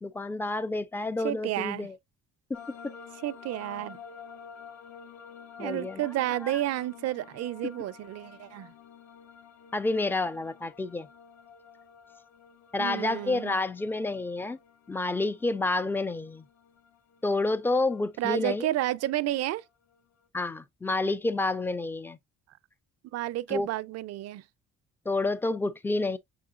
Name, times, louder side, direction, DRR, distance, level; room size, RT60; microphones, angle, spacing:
voice 1, 0.0-2.0 2.5-2.6 2.8-2.9 5.6-6.1 6.4-6.6 9.7-11.1 12.7-14.6 14.9-16.4 17.2-18.7 20.3-22.2 23.5-23.7 25.1-26.2, left 2 dB, 5° left, 0.3 m, -29 dB
voice 2, 1.2-1.9 3.2-4.0 5.6-8.7 12.8-13.6 18.2-19.6 23.1-24.4, right 14 dB, 55° right, 0.4 m, -31 dB
sound 1, 2.5-20.3, left 6 dB, 60° left, 0.8 m, -51 dB
5.9 x 3.8 x 2.3 m
cardioid pair, 120°, 30 cm